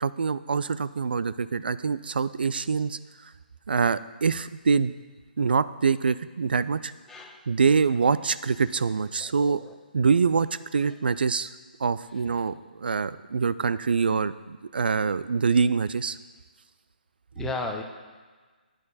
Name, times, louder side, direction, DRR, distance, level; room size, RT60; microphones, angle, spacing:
voice 1, 0.0-3.0 3.7-4.9 5.4-6.9 7.5-9.6 9.9-11.5 11.8-16.2, right 5 dB, 75° right, 16 dB, 0.3 m, -25 dB
voice 2, 7.1-7.4 9.2-9.7 17.4-17.8, left 3 dB, 10° left, 3 dB, 0.6 m, -34 dB
8.9 x 6.4 x 4.1 m, 1.4 s
figure-of-eight pair, 140°, 5 cm